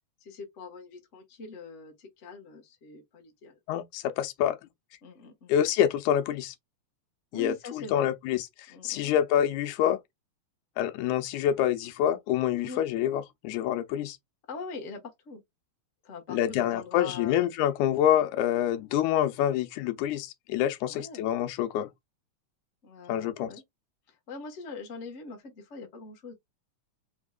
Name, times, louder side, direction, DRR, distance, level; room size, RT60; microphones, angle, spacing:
voice 1, 0.2-3.6 5.0-5.5 7.3-8.1 8.7-9.2 12.6-12.8 14.5-15.4 16.0-17.5 20.8-21.3 22.8-23.6 24.1-26.3, left 4 dB, 45° left, 1.0 m, -43 dB
voice 2, 3.7-4.6 5.5-6.6 7.3-8.5 8.8-10.0 10.8-14.2 16.3-21.9 23.1-23.5, left 11 dB, 85° left, 2.1 m, -27 dB
4.6 x 3.5 x 2.3 m
omnidirectional pair, 3.3 m